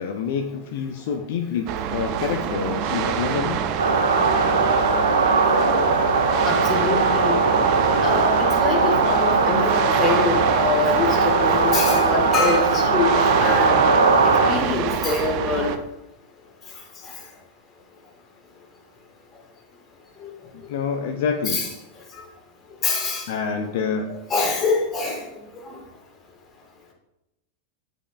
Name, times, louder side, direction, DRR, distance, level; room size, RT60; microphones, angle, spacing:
voice 1, 0.0-3.6 20.7-21.7 23.3-24.2, left 6 dB, 55° left, 5 dB, 0.5 m, -27 dB
sound 1, 1.7-15.8, right 8 dB, 40° right, 0.5 m, -26 dB
sound 2, 3.8-14.5, right 3 dB, 75° right, 0.8 m, -20 dB
voice 2, 6.4-7.4 8.0-13.8 14.2-15.7 17.0-17.1 20.2-20.3 21.4-21.7 22.8-23.3 24.3-25.3 25.7-25.8, left 4 dB, 25° left, 1 dB, 1.5 m, -25 dB
8.2 x 5.3 x 2.3 m, 0.91 s
figure-of-eight pair, 90°, 0 cm